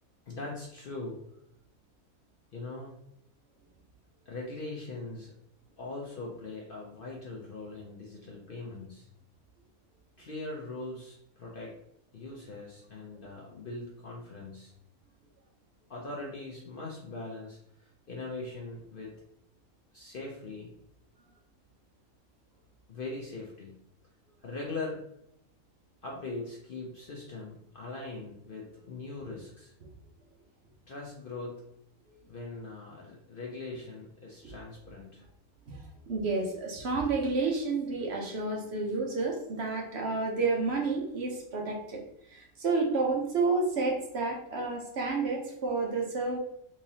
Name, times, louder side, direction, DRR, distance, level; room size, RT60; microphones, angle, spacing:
voice 1, 0.3-1.2 2.5-2.9 4.3-5.3 5.8-9.1 10.2-11.7 12.1-14.7 15.9-19.1 19.9-20.7 22.9-23.7 24.4-25.0 26.0-29.7 30.9-31.6 32.3-35.2, left 2 dB, 55° left, -2 dB, 0.6 m, -41 dB
voice 2, 35.7-42.0 42.3-46.4, right 3 dB, 55° right, 0 dB, 0.9 m, -30 dB
3.7 x 3.0 x 2.7 m, 0.77 s
omnidirectional pair, 1.4 m